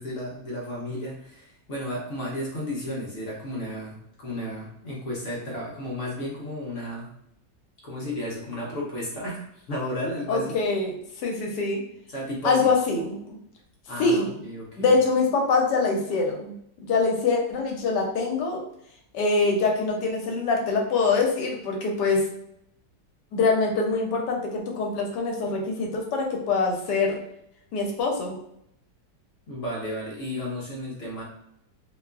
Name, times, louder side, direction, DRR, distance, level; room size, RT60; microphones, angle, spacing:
voice 1, 0.0-7.1 7.8-10.5 12.1-12.7 13.9-14.9 29.5-31.2, equal, 60° left, -4 dB, 0.8 m, -33 dB
voice 2, 10.3-11.8 12.4-13.4 14.0-14.3 14.8-16.5 16.8-18.6 19.1-22.2 23.3-27.2 27.7-28.4, left 4 dB, 75° left, 0 dB, 1.2 m, -24 dB
2.9 x 2.3 x 2.2 m, 0.75 s
omnidirectional pair, 1.9 m